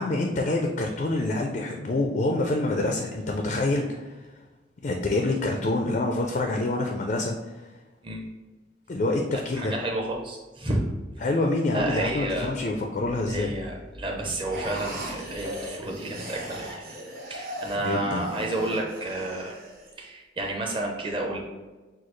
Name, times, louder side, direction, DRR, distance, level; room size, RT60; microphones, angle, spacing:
voice 1, 0.0-4.1 4.8-7.4 8.9-9.7 11.2-13.5 17.8-18.2, left 2 dB, 40° left, 2 dB, 0.4 m, -26 dB
voice 2, 9.3-10.8 11.7-12.5 13.3-16.8 17.3-19.5 20.0-21.4, right 1 dB, 25° right, 0 dB, 0.7 m, -31 dB
sound 1, 14.5-19.9, equal, 50° right, 1.0 m, -38 dB
6.2 x 2.3 x 3.1 m, 1.2 s
head